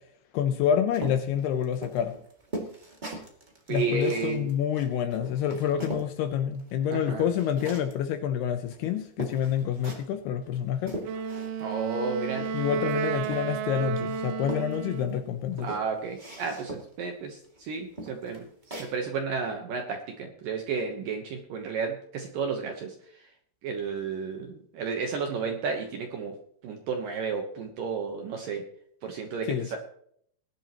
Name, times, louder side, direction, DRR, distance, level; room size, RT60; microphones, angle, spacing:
voice 1, 0.3-2.1 3.7-11.0 12.5-15.7 29.5-29.8, left 9 dB, 75° left, 8 dB, 2.5 m, -28 dB
sound 1, 0.9-6.1 6.5-8.0 8.7-8.8 9.2-10.2 10.5-11.7 12.0-13.7 14.1-15.1 15.5-17.0 17.4-17.6 18.0-18.9, right 1 dB, 30° right, 0.8 m, -40 dB
voice 2, 3.7-4.5 6.9-7.3 11.6-12.5 15.6-18.5 18.8-23.3 23.6-26.4 26.6-28.7 29.0-29.8, right 5 dB, 70° right, 4 dB, 2.2 m, -32 dB
Wind instrument woodwind instrument, 11.0-15.3, right 7 dB, 90° right, 2.3 m, -32 dB
20.0 x 11.0 x 3.0 m, 0.65 s
omnidirectional pair, 5.3 m